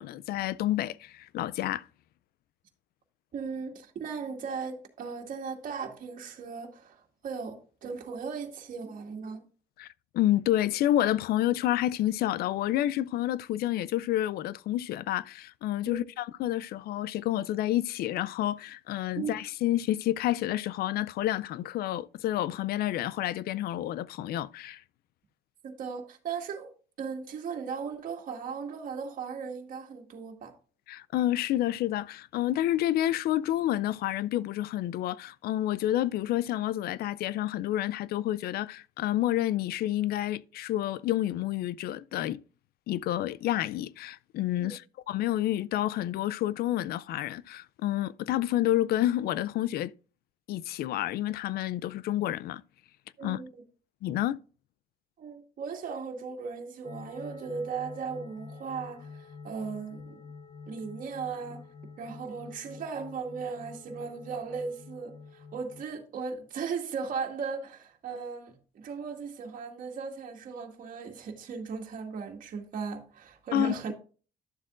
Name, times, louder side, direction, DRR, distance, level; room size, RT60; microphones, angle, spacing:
voice 1, 0.0-1.8 9.8-9.9 10.1-24.8 30.9-42.4 42.9-44.8 45.1-49.9 50.5-52.6 53.2-53.4 54.0-54.4 73.5-73.9, left 13 dB, 65° left, 0.4 m, -29 dB
voice 2, 3.3-7.6 7.8-9.4 15.9-16.0 19.2-19.3 25.6-26.7 27.0-30.5 44.6-44.7 53.2-53.6 55.2-60.3 60.7-61.7 62.0-73.9, right 5 dB, 55° right, 2.1 m, -37 dB
sound 1, 56.8-65.8, left 4 dB, 25° left, 1.0 m, -48 dB
11.5 x 7.3 x 2.5 m
cardioid pair, 110°, 17 cm